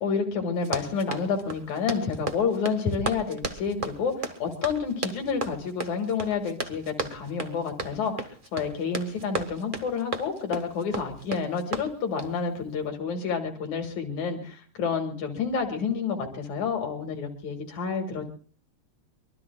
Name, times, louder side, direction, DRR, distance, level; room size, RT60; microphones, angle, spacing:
voice 1, 0.0-18.3, left 5 dB, 70° left, 4 dB, 3.1 m, -29 dB
Run, 0.6-12.4, right 3 dB, 40° right, 0.6 m, -35 dB
24.0 x 23.5 x 2.3 m, 0.43 s
omnidirectional pair, 3.5 m